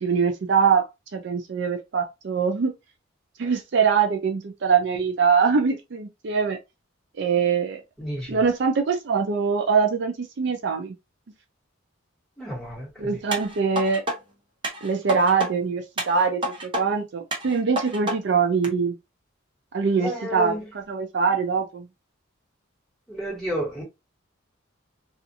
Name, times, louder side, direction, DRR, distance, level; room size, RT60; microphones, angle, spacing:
voice 1, 0.0-2.7 3.4-6.6 7.2-7.8 8.3-10.9 13.0-14.0 14.8-19.0 19.7-21.9, right 5 dB, 55° right, 0.4 m, -23 dB
voice 2, 8.0-8.4 12.4-13.2 20.0-20.7 23.1-23.8, right 1 dB, ahead, 1.4 m, -31 dB
sound 1, 13.3-14.2 14.6-15.5 16.0-16.8 17.3-18.2 18.6-18.7, equal, 25° right, 0.7 m, -29 dB
2.5 x 2.5 x 2.6 m
head